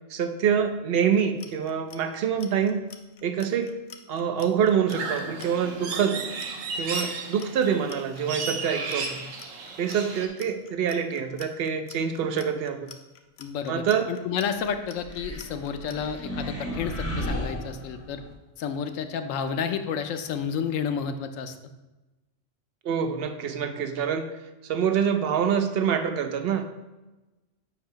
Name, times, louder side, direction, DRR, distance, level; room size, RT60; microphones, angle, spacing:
voice 1, 0.1-2.8 3.2-3.8 4.1-6.2 6.8-9.2 9.8-12.9 13.7-14.1 22.8-24.3 24.6-26.6, right 7 dB, 60° right, 7 dB, 0.7 m, -26 dB
Clock, 1.1-16.0, left 7 dB, 60° left, 0.8 m, -47 dB
sound 1, 4.9-10.3, right 4 dB, 85° right, 1.2 m, -34 dB
voice 2, 13.4-18.2 18.6-21.5, left 7 dB, 85° left, 8 dB, 1.0 m, -31 dB
sound 2, 15.0-18.3, equal, 10° left, 0.9 m, -34 dB
8.1 x 2.8 x 5.6 m, 1.1 s
omnidirectional pair, 1.3 m